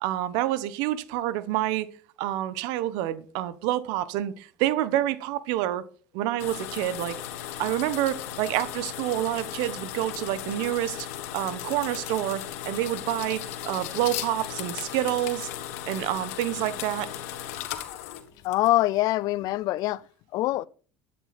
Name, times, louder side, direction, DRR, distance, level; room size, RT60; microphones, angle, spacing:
voice 1, 0.0-1.9 2.2-5.8 6.1-7.2 7.6-11.1 11.3-15.5 15.9-17.1, right 14 dB, 75° right, 1.1 m, -28 dB
sound 1, 6.4-19.0, left 11 dB, 90° left, 1.6 m, -36 dB
voice 2, 18.4-20.0 20.3-20.7, left 16 dB, 60° left, 0.5 m, -24 dB
12.5 x 9.2 x 4.3 m
supercardioid pair, 110°, 7 cm